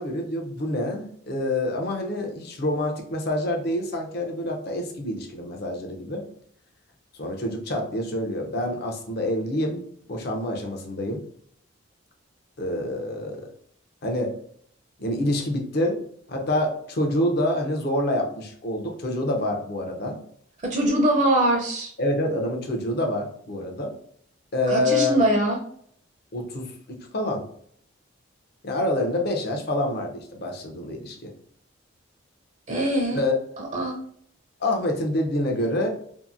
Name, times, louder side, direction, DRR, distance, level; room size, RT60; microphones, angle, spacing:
voice 1, 0.0-6.2 7.2-11.2 12.6-13.5 14.0-14.3 15.0-16.0 16.3-20.2 22.0-23.9 24.5-25.2 26.3-27.4 28.6-31.3 33.1-33.4 34.6-35.9, left 1 dB, 50° left, 2 dB, 0.6 m, -27 dB
voice 2, 20.6-21.9 24.7-25.6 32.7-33.2 33.6-34.0, right 1 dB, 40° right, 0 dB, 0.5 m, -22 dB
2.7 x 2.5 x 2.5 m, 0.63 s
head